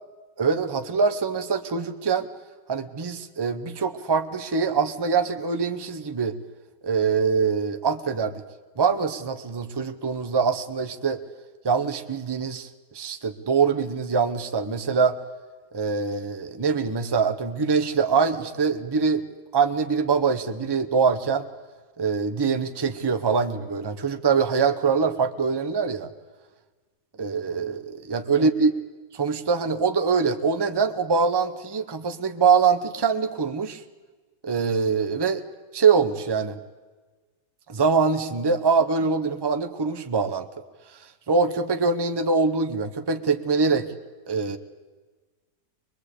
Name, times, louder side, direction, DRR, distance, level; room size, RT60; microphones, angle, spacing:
voice 1, 0.4-2.3 2.7-6.4 6.8-8.3 8.8-11.2 11.6-12.7 12.9-15.2 15.7-19.2 19.5-21.5 22.0-26.1 27.2-28.7 29.1-33.8 34.4-35.4 35.7-36.6 37.7-40.5 41.3-43.9 44.3-44.6, right 5 dB, 20° right, 8 dB, 0.7 m, -23 dB
22.5 x 22.0 x 8.4 m, 1.3 s
omnidirectional pair, 1.8 m